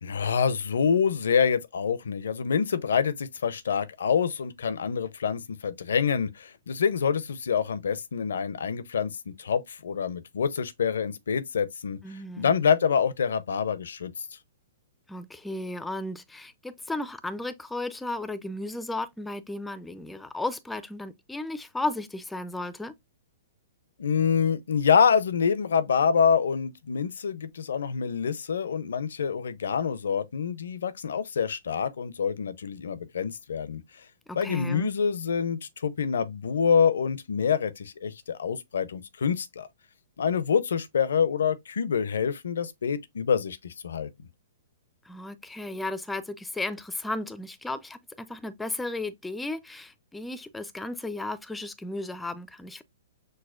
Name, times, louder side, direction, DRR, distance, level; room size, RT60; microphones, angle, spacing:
voice 1, 0.0-12.0 12.4-14.1 24.0-33.8 34.4-39.7 40.2-44.1, left 6 dB, 80° left, 0.5 m, -26 dB
voice 2, 12.0-12.5 15.1-22.9 34.3-34.9 45.0-52.8, left 2 dB, 5° left, 0.4 m, -34 dB
6.3 x 2.2 x 2.4 m
hypercardioid pair, 130°, 0 cm